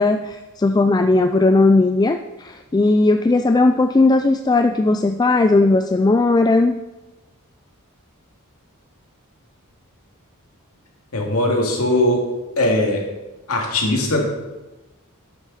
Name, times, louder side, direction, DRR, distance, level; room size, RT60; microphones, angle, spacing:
voice 1, 0.0-6.8, left 2 dB, 20° left, 7 dB, 0.3 m, -17 dB
voice 2, 11.1-12.2 12.6-13.0 13.5-14.2, left 1 dB, 70° left, 0 dB, 2.4 m, -19 dB
11.0 x 8.9 x 4.2 m, 1.1 s
head